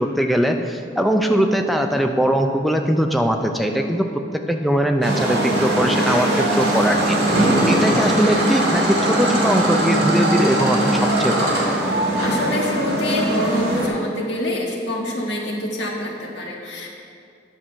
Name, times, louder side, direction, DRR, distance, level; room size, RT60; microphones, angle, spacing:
voice 1, 0.0-4.1 4.5-11.5, equal, ahead, 4 dB, 0.4 m, -21 dB
sound 1, 5.0-13.9, right 1 dB, 55° right, 2.0 m, -20 dB
voice 2, 12.2-16.9, left 1 dB, 65° left, -2 dB, 1.6 m, -26 dB
9.9 x 6.1 x 5.6 m, 2.4 s
head